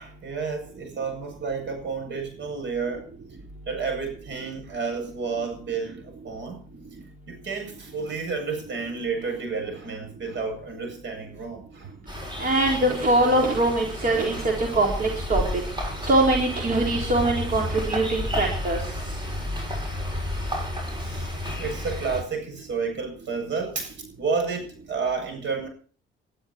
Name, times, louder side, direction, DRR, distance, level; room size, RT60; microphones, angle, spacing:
voice 1, 0.0-3.1 3.7-6.6 7.3-11.9 21.0-25.7, right 5 dB, 65° right, 7.9 m, -31 dB
sound 1, 12.1-22.2, left 1 dB, 25° right, 7.7 m, -31 dB
voice 2, 12.4-15.4 16.0-18.8, right 2 dB, 45° right, 4.1 m, -22 dB
21.0 x 12.5 x 4.5 m
cardioid pair, 90°, 20 cm